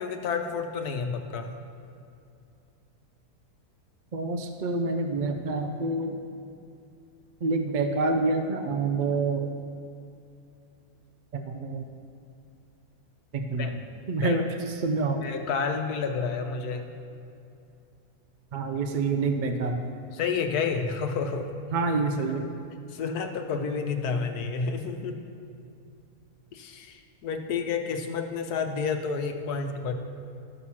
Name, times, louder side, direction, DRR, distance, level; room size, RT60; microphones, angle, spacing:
voice 1, 0.0-1.6 13.6-13.7 14.2-14.4 15.2-16.9 20.1-21.5 22.3-22.5 22.9-25.2 26.5-29.9, left 5 dB, 85° left, 5 dB, 1.4 m, -30 dB
voice 2, 4.1-6.2 7.4-9.5 11.3-11.9 13.3-13.7 14.1-15.3 18.5-19.8 21.7-22.5, right 3 dB, 60° right, 6 dB, 0.5 m, -27 dB
13.0 x 6.2 x 5.7 m, 2.6 s
omnidirectional pair, 1.6 m